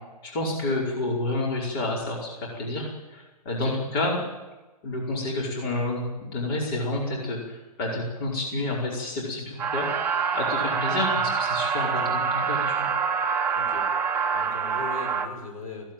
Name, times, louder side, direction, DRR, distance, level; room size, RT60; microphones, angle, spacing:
voice 1, 0.2-4.2 4.8-12.9, left 2 dB, 35° left, -3 dB, 5.1 m, -29 dB
sound 1, 9.6-15.3, right 6 dB, 10° right, 1.3 m, -26 dB
voice 2, 13.6-13.9 14.3-15.9, left 3 dB, 60° left, 3 dB, 6.4 m, -39 dB
17.5 x 17.0 x 9.1 m, 1.2 s
hypercardioid pair, 165°, 20 cm